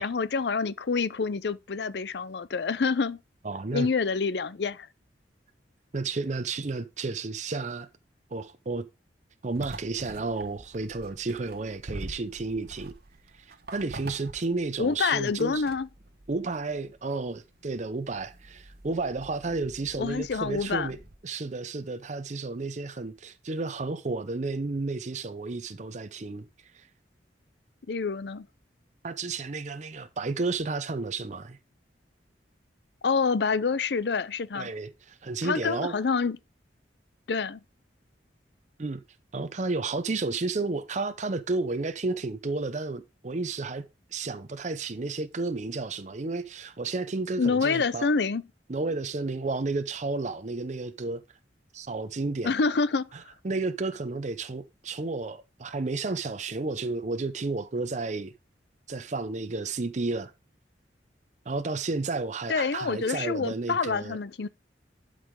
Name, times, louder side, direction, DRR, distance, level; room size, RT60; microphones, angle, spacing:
voice 1, 0.0-3.2 3.7-4.9 14.8-15.9 20.0-20.9 27.9-28.5 33.0-34.7 35.4-36.4 37.3-37.6 47.4-48.4 52.4-53.1 62.5-64.5, left 4 dB, 65° left, 0.5 m, -27 dB
voice 2, 3.4-3.9 5.9-7.9 8.3-8.9 9.4-12.9 13.4-15.6 16.3-26.9 29.0-31.6 34.5-36.0 38.8-39.0 39.3-48.1 48.7-51.2 51.7-52.5 53.4-58.3 58.9-60.3 61.5-64.2, right 3 dB, 40° right, 0.6 m, -32 dB
sound 1, 9.5-21.2, right 2 dB, 55° right, 1.1 m, -46 dB
12.0 x 4.9 x 3.7 m
head